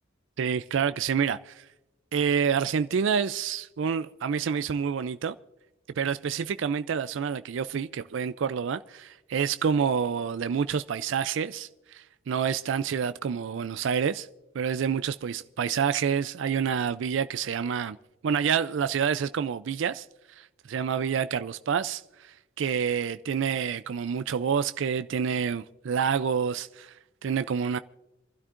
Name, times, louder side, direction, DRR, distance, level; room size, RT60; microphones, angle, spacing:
voice 1, 0.4-1.6 2.1-5.4 6.0-14.3 14.5-18.0 18.2-26.9 27.2-27.8, right 7 dB, 65° right, 0.4 m, -28 dB
28.0 x 12.0 x 2.5 m
head